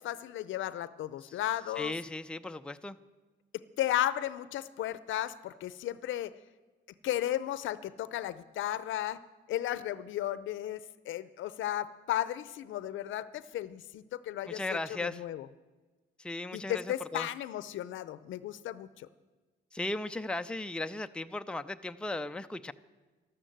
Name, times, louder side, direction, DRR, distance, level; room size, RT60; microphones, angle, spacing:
voice 1, 0.0-1.9 3.8-6.3 7.0-9.2 9.5-15.5 16.5-19.1, left 12 dB, 75° left, 16 dB, 0.6 m, -34 dB
voice 2, 1.8-3.0 14.5-15.2 16.2-17.3 19.7-22.7, left 2 dB, 5° left, 9 dB, 0.5 m, -36 dB
12.5 x 12.5 x 7.8 m, 1.3 s
cardioid pair, 90°, 20 cm